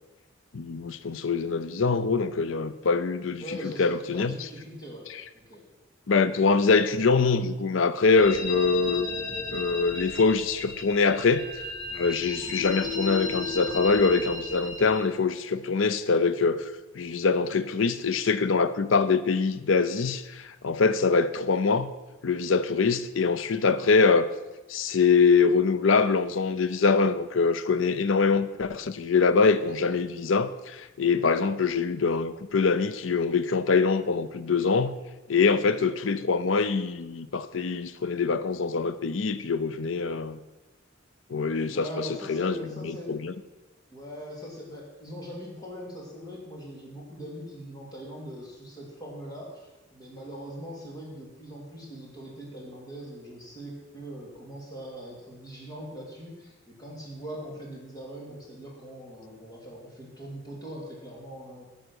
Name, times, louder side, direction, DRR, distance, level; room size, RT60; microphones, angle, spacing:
voice 1, 0.5-3.4 3.8-4.3 5.1-5.2 6.1-9.1 9.5-11.5 11.9-21.9 22.2-24.3 24.7-35.0 35.3-40.4 41.3-42.6 42.8-43.3, left 4 dB, 85° left, 0.6 m, -24 dB
voice 2, 3.4-5.1 5.3-5.6 41.7-43.1 43.9-61.6, equal, 20° left, 2.9 m, -41 dB
sound 1, 8.1-15.0, left 3 dB, 55° left, 2.4 m, -34 dB
11.5 x 6.7 x 6.2 m
head